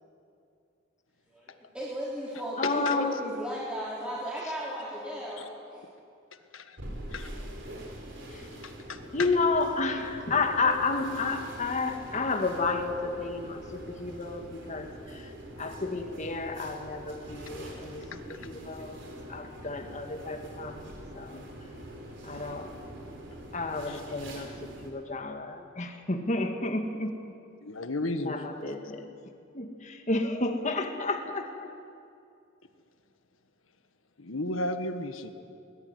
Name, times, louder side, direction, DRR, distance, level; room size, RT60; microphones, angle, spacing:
voice 1, 1.3-5.5 5.7-5.8, equal, 5° right, -7 dB, 3.6 m, -36 dB
voice 2, 2.6-3.2 8.3-8.5 9.1-15.3 15.6-19.0 19.3-21.4 22.2-22.7 23.5-27.3 28.2-29.1 29.5-31.7, left 3 dB, 40° left, 5 dB, 1.9 m, -31 dB
sound 1, 6.8-24.9, right 1 dB, 65° right, 4.4 m, -44 dB
voice 3, 8.2-9.3 23.9-24.0 27.6-28.4 34.2-35.3, left 2 dB, 90° left, 9 dB, 1.6 m, -34 dB
22.0 x 19.0 x 9.6 m, 2.5 s
head